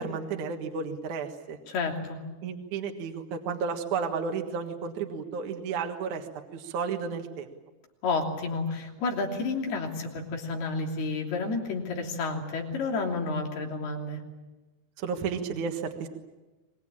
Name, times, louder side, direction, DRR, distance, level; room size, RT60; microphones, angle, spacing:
voice 1, 0.0-1.6 2.4-7.5 15.0-16.1, right 5 dB, 60° right, 3 dB, 2.7 m, -32 dB
voice 2, 1.7-2.2 8.0-14.2, left 3 dB, 85° left, 1 dB, 5.1 m, -30 dB
25.0 x 21.0 x 8.7 m, 1.1 s
omnidirectional pair, 4.4 m